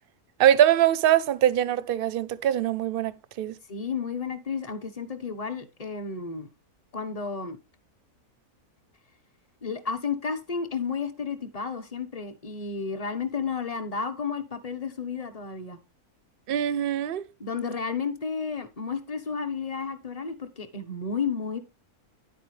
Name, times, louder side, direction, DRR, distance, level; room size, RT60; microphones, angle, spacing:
voice 1, 0.4-3.1 3.4-3.5 16.5-17.2, right 11 dB, 55° right, 0.6 m, -22 dB
voice 2, 3.7-6.5 6.9-7.6 9.6-15.8 17.4-21.6, left 5 dB, 30° left, 1.1 m, -32 dB
10.5 x 8.5 x 3.3 m
omnidirectional pair, 1.6 m